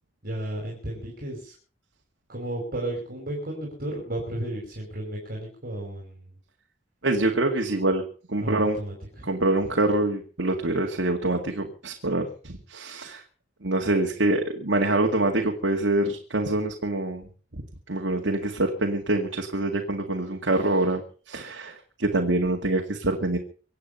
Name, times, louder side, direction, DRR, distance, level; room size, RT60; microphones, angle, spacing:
voice 1, 0.2-1.5 2.3-6.3 8.4-9.3, right 1 dB, 55° right, -2 dB, 5.3 m, -33 dB
voice 2, 7.0-8.0 8.3-8.8 9.2-13.2 13.6-17.3 17.5-21.0 21.3-23.4, right 2 dB, 80° right, 2 dB, 2.1 m, -25 dB
25.0 x 8.8 x 5.6 m, 0.40 s
head